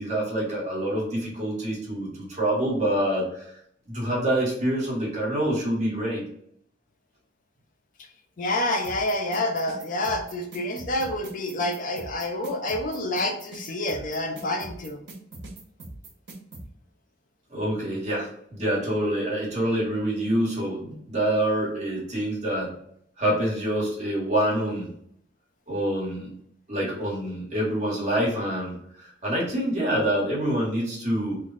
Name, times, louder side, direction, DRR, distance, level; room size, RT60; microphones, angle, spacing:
voice 1, 0.0-3.5 3.9-6.2 17.5-22.7 23.2-24.9 25.7-26.3 26.7-31.4, right 1 dB, 40° right, -5 dB, 1.4 m, -26 dB
voice 2, 8.4-15.0, left 1 dB, 45° left, 4 dB, 0.4 m, -28 dB
sound 1, 8.8-16.6, right 2 dB, 85° right, 0.9 m, -41 dB
3.2 x 2.2 x 3.8 m, 0.69 s
head